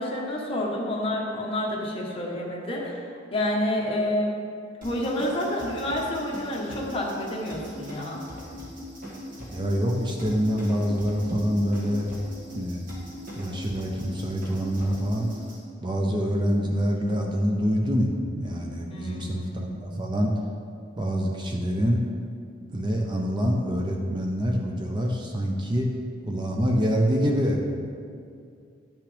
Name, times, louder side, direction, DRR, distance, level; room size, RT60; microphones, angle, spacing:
voice 1, 0.0-3.0 3.3-4.3 4.8-8.2 18.9-20.0, left 1 dB, 30° left, -3 dB, 1.2 m, -29 dB
sound 1, 4.8-15.6, left 1 dB, 50° right, 1.9 m, -40 dB
voice 2, 9.5-12.1 12.5-12.9 13.4-15.3 15.8-20.3 21.0-22.0 22.7-25.9 26.3-27.6, equal, 25° right, 1 dB, 0.6 m, -26 dB
10.5 x 5.9 x 3.4 m, 2.3 s
head